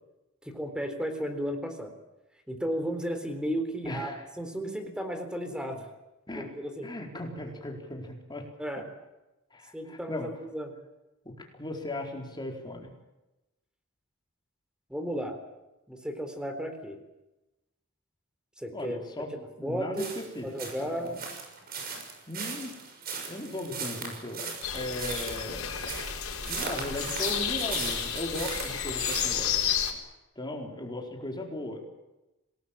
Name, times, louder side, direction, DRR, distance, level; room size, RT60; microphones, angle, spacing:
voice 1, 0.4-1.9 2.5-5.9 6.3-6.9 8.6-8.8 9.7-10.7 14.9-15.4 15.9-17.0 18.6-19.0 19.3-20.1 20.4-21.2, equal, 5° right, 6 dB, 3.9 m, -34 dB
voice 2, 3.8-4.3 6.3-6.5 6.8-8.5 9.5-10.3 11.2-12.9 18.7-19.3 19.6-21.2 22.3-22.7 23.2-25.8 26.4-29.6 30.4-31.8, left 1 dB, 20° left, 1 dB, 4.6 m, -37 dB
sound 1, 20.0-29.3, right 5 dB, 45° right, 6.6 m, -38 dB
sound 2, 24.6-29.9, left 8 dB, 80° left, 4.4 m, -31 dB
27.0 x 19.5 x 7.5 m, 0.98 s
head